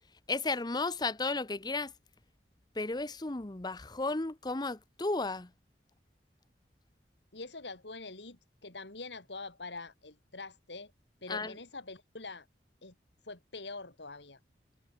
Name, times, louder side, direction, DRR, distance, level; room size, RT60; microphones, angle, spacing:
voice 1, 0.3-1.9 2.7-5.5 11.3-11.6, left 3 dB, 25° left, 0.8 m, -34 dB
voice 2, 7.3-10.9 11.2-12.5 12.8-12.9 13.2-14.4, left 3 dB, 85° left, 3.5 m, -44 dB
head